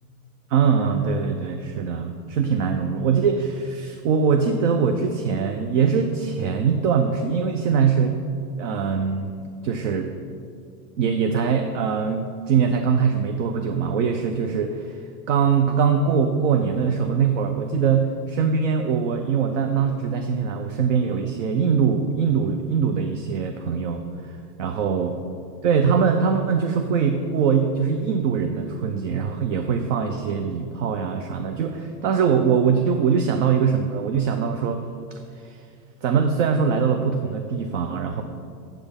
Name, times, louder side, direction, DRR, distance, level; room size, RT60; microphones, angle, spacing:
voice 1, 0.5-8.2 8.6-10.1 11.0-15.0 15.3-25.1 25.6-34.8 35.1-35.6 36.0-38.2, right 6 dB, 55° right, 6 dB, 0.6 m, -22 dB
7.7 x 7.2 x 5.1 m, 2.4 s
supercardioid pair, 155°, 48 cm